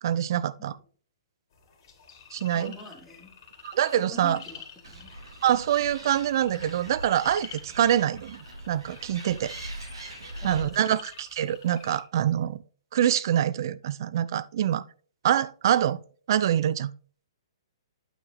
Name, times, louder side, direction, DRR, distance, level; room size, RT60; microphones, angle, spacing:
voice 1, 0.0-0.7 2.3-2.7 3.6-4.4 5.4-8.4 8.7-9.5 10.4-12.6 12.9-14.8 15.2-16.0 16.3-16.9, right 10 dB, 55° right, 0.5 m, -25 dB
sound 1, 1.5-12.0, left 7 dB, 50° left, 2.8 m, -49 dB
voice 2, 2.5-3.4 4.0-5.1 10.4-10.9, left 3 dB, 5° left, 2.6 m, -45 dB
Animal, 4.8-10.6, right 1 dB, 75° right, 2.8 m, -42 dB
9.1 x 4.7 x 4.0 m
hypercardioid pair, 125°, 3 cm